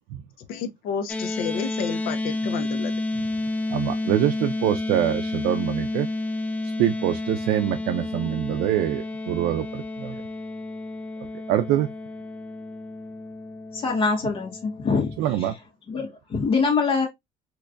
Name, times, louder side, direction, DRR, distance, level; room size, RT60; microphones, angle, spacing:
voice 1, 0.5-2.9, left 7 dB, 70° left, 0.6 m, -31 dB
sound 1, 1.1-15.5, left 2 dB, 10° left, 0.3 m, -31 dB
voice 2, 3.7-6.1 6.8-10.2 11.5-11.9 15.2-15.6, right 12 dB, 75° right, 0.4 m, -24 dB
voice 3, 13.7-15.1 15.4-15.5 15.9-17.1, left 4 dB, 35° left, 1.6 m, -24 dB
3.3 x 3.0 x 2.4 m
cardioid pair, 150°, 16 cm